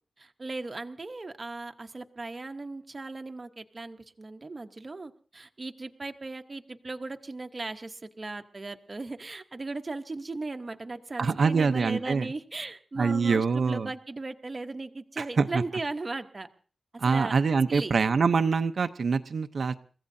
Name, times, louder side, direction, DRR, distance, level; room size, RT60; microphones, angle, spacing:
voice 1, 0.2-16.5 17.0-17.4 17.7-17.9, right 3 dB, 25° right, 6 dB, 0.9 m, -37 dB
voice 2, 11.2-12.3 13.0-13.9 15.2-15.6 17.0-19.7, right 5 dB, 55° right, 10 dB, 0.6 m, -25 dB
30.0 x 15.5 x 2.7 m, 0.40 s
wide cardioid pair, 175°, 0 cm